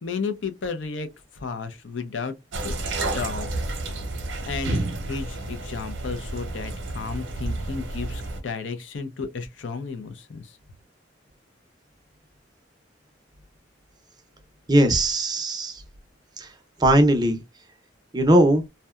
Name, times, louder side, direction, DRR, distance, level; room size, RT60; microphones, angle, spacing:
voice 1, 0.0-1.1 1.3-2.4 2.6-3.5 3.8-3.9 4.5-4.8 5.1-10.6, left 5 dB, 75° left, 0.5 m, -33 dB
sound 1, 2.5-8.4, right 2 dB, 75° right, 0.7 m, -30 dB
voice 2, 14.7-15.8 16.4-16.5 16.8-17.4 18.1-18.6, right 1 dB, 20° right, 0.5 m, -19 dB
2.7 x 2.2 x 2.2 m
head